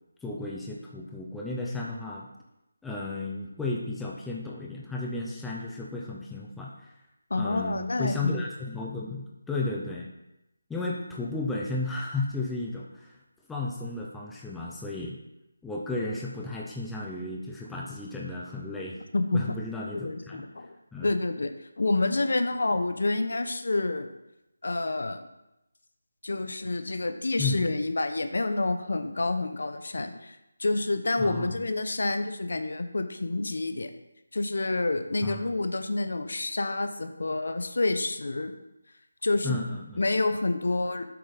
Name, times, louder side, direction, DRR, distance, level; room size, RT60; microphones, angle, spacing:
voice 1, 0.2-2.3 2.8-6.7 7.3-10.1 10.7-13.1 13.5-15.2 15.6-19.0 19.3-20.4 20.9-21.1 27.4-27.7 31.2-31.5 35.2-35.4 39.4-40.0, left 2 dB, 5° left, -4 dB, 0.6 m, -33 dB
voice 2, 7.3-8.4 19.1-19.6 19.9-20.7 21.0-21.5 21.8-24.1 24.6-25.3 26.2-33.9 34.3-38.6 39.2-39.6 40.0-41.1, left 2 dB, 65° left, 8 dB, 1.0 m, -28 dB
7.9 x 6.0 x 5.1 m, 0.90 s
figure-of-eight pair, 170°, 0 cm